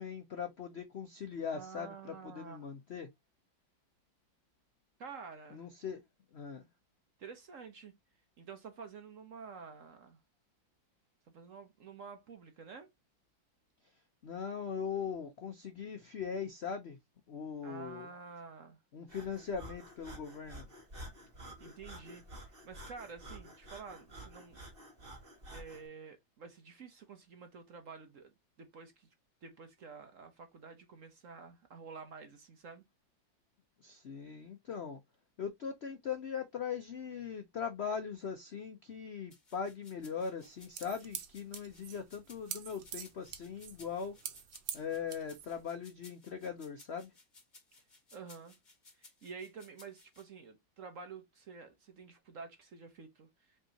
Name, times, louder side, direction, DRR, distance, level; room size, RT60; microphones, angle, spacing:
voice 1, 0.0-3.1 5.5-6.0 6.3-6.7 14.2-17.0 17.3-18.1 18.9-20.7 33.8-35.0 35.4-44.2 44.7-47.1, left 6 dB, 70° left, 0.6 m, -40 dB
voice 2, 1.5-2.6 5.0-5.7 7.2-8.0 8.4-10.2 11.3-12.9 17.6-18.8 21.6-24.6 25.5-28.3 28.6-29.1 29.4-32.8 48.1-48.5 48.9-53.6, right 5 dB, 55° right, 1.0 m, -50 dB
Breathing, 19.1-25.9, right 1 dB, 30° right, 2.0 m, -50 dB
sound 1, 39.3-50.2, left 3 dB, 25° left, 1.5 m, -60 dB
sound 2, 40.4-45.6, right 9 dB, 75° right, 1.5 m, -45 dB
5.3 x 3.6 x 2.7 m
omnidirectional pair, 2.1 m